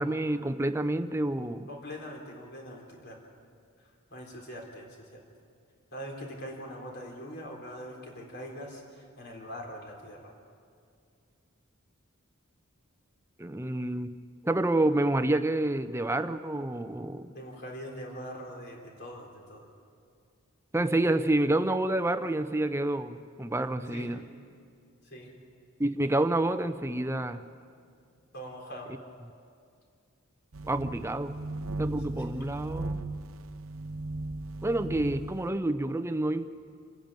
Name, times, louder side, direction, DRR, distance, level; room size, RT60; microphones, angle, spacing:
voice 1, 0.0-1.7 13.4-14.1 14.4-17.3 20.7-24.2 25.8-27.4 30.6-31.3 31.8-33.0 34.6-36.5, right 1 dB, 10° right, 9 dB, 0.6 m, -28 dB
voice 2, 1.7-3.2 3.8-5.2 5.9-10.3 17.3-19.7 23.9-24.1 25.0-25.3 28.3-28.9 32.2-32.3, equal, 50° left, 0 dB, 3.8 m, -42 dB
sound 1, 30.5-35.5, right 2 dB, 70° right, 0.8 m, -37 dB
28.0 x 10.5 x 9.0 m, 2.2 s
head